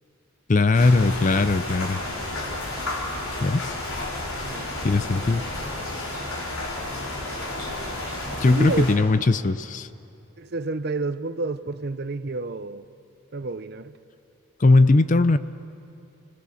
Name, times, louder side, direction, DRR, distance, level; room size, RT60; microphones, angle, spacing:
voice 1, 0.5-2.0 3.4-3.7 4.8-5.4 8.4-9.9 14.6-15.4, left 3 dB, 35° left, 0.5 m, -19 dB
sound 1, 0.7-8.9, left 2 dB, 80° left, 4.2 m, -31 dB
voice 2, 4.4-5.3 8.4-8.9 10.4-12.9 13.3-13.9, right 3 dB, 50° right, 0.6 m, -30 dB
29.0 x 18.5 x 7.1 m
head